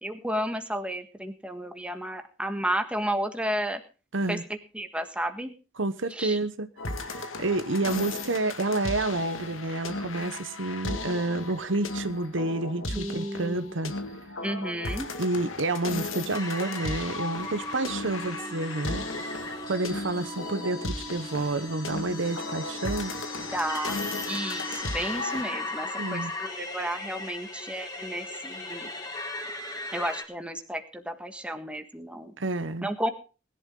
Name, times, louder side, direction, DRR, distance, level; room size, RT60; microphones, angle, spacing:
voice 1, 0.0-3.8 4.3-5.5 6.1-6.4 12.9-13.7 14.4-15.1 23.5-24.0 24.3-28.9 29.9-32.3 32.8-33.1, right 1 dB, 5° right, 6 dB, 1.6 m, -32 dB
voice 2, 4.1-4.4 5.8-6.7 7.0-13.9 15.2-19.0 19.7-23.1 26.0-26.3 32.4-32.9, right 2 dB, 65° right, 12 dB, 1.0 m, -29 dB
sound 1, 6.8-25.4, left 3 dB, 80° left, 2.1 m, -36 dB
sound 2, 16.3-30.2, left 2 dB, 20° left, 3.3 m, -38 dB
sound 3, 16.8-24.8, right 3 dB, 30° right, 3.9 m, -44 dB
20.0 x 11.5 x 3.8 m, 0.34 s
head